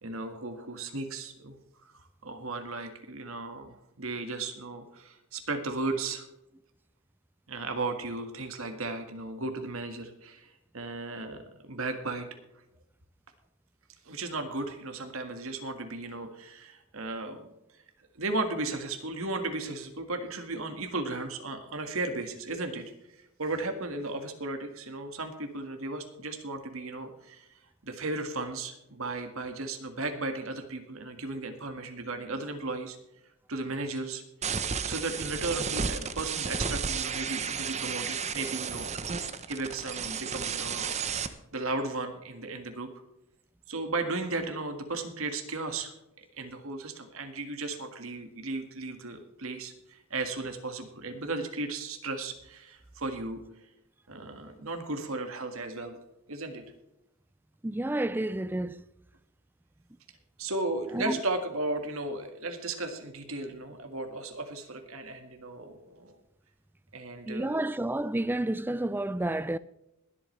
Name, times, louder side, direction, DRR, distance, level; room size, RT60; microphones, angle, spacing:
voice 1, 0.0-1.5 1.8-1.9 2.2-6.3 7.5-12.3 14.0-17.4 18.1-22.9 23.4-27.5 27.8-33.0 33.5-40.9 41.5-42.9 43.7-45.9 46.4-53.4 54.1-56.0 56.3-56.6 60.4-66.1 66.9-67.7, right 2 dB, 70° right, 1.7 m, -35 dB
sound 1, 34.4-41.3, right 6 dB, 30° right, 0.9 m, -33 dB
voice 2, 57.6-58.8 60.9-61.2 67.3-69.6, right 1 dB, 10° right, 0.3 m, -30 dB
21.5 x 8.5 x 3.3 m
head